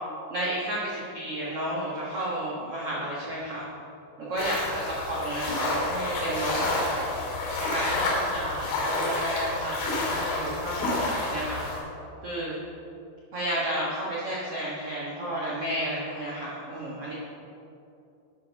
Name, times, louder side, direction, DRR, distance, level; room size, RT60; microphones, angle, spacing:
voice 1, 0.3-3.6 4.3-7.1 7.7-11.6 12.2-12.6 13.3-17.2, right 1 dB, 75° right, -6 dB, 1.3 m, -32 dB
sound 1, 4.4-11.8, left 2 dB, 80° left, 5.4 m, -29 dB
12.5 x 7.8 x 5.8 m, 2.7 s
omnidirectional pair, 5.4 m